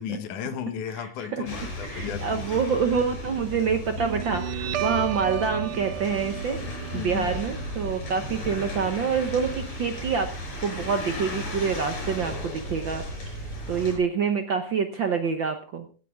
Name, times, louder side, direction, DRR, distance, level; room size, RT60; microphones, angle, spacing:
voice 1, 0.0-2.4 6.9-7.3, left 9 dB, 90° left, 10 dB, 2.7 m, -34 dB
voice 2, 1.0-1.5 1.8-6.6 6.9-10.3 10.6-13.0 13.3-15.8, right 6 dB, 65° right, 6 dB, 1.2 m, -27 dB
sound 1, 1.5-14.0, left 1 dB, 65° left, 6.1 m, -35 dB
Guitar, 4.0-11.0, right 13 dB, 90° right, 1.2 m, -35 dB
16.5 x 9.5 x 3.6 m, 0.39 s
omnidirectional pair, 3.4 m